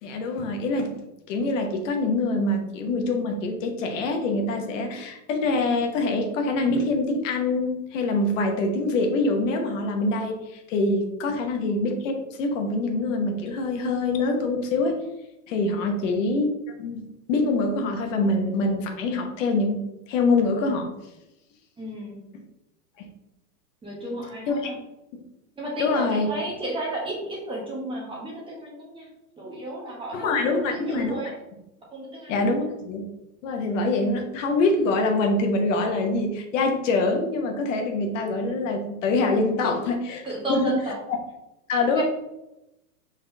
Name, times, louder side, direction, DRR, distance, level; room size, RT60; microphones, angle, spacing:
voice 1, 0.0-15.0 15.5-16.5 16.8-17.0 17.3-19.8 20.1-20.9 23.0-23.1 24.5-24.7 25.8-26.3 30.1-31.2 32.3-33.1 33.4-40.2 40.5-40.7 41.7-42.0, left 2 dB, 55° left, 3 dB, 1.1 m, -25 dB
voice 2, 21.8-22.3 23.8-24.8 25.6-29.1 29.4-31.4 31.9-32.5 39.6-39.8 40.2-41.0 41.9-42.0, right 1 dB, 10° right, -3 dB, 1.0 m, -33 dB
5.2 x 3.8 x 2.7 m, 0.91 s
hypercardioid pair, 130°, 46 cm